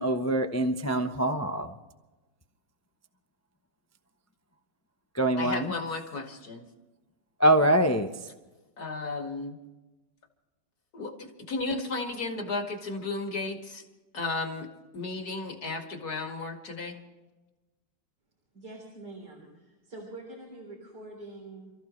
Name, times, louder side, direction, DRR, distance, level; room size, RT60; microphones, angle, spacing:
voice 1, 0.0-1.8 5.1-5.7 7.4-8.1, right 1 dB, 25° left, 6 dB, 0.3 m, -24 dB
voice 2, 5.4-6.7 8.8-9.6 10.9-13.8 14.1-14.7 14.9-17.0, left 3 dB, 55° left, 3 dB, 2.5 m, -34 dB
voice 3, 18.5-21.7, right 2 dB, 65° right, -1 dB, 4.3 m, -45 dB
29.5 x 14.5 x 3.2 m, 1.1 s
omnidirectional pair, 2.0 m